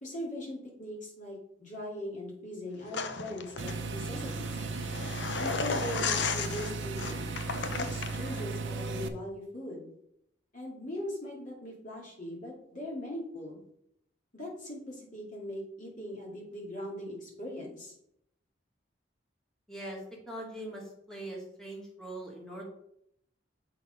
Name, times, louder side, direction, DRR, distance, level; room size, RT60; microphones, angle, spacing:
voice 1, 0.0-4.6 5.4-7.3 7.8-9.9 10.5-13.6 14.3-17.9, left 1 dB, 40° left, -2 dB, 2.5 m, -40 dB
sound 1, 2.9-8.4, left 5 dB, 65° left, 0.6 m, -35 dB
sound 2, 3.6-9.1, right 3 dB, 70° right, 0.6 m, -36 dB
voice 2, 19.7-20.0 20.3-22.6, right 1 dB, 5° left, -3 dB, 1.7 m, -41 dB
7.1 x 4.0 x 5.2 m, 0.75 s
head